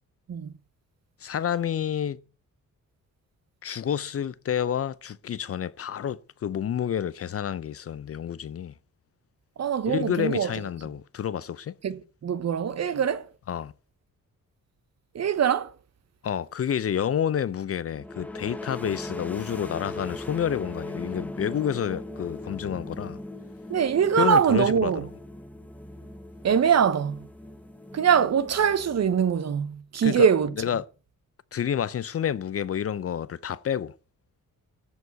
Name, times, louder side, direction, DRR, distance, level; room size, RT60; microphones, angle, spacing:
voice 1, 1.2-2.2 3.6-8.7 9.9-11.8 13.5-13.7 16.2-23.2 24.2-24.9 30.0-30.3 30.6-30.8 31.5-34.0, left 9 dB, 45° left, 0.6 m, -29 dB
voice 2, 9.6-10.5 11.8-13.3 15.1-15.7 23.7-25.0 26.4-27.3 27.9-30.5, right 7 dB, 50° right, 1.1 m, -23 dB
sound 1, 17.9-29.5, left 1 dB, 5° left, 0.9 m, -39 dB
14.5 x 4.9 x 9.3 m
wide cardioid pair, 170°, 33 cm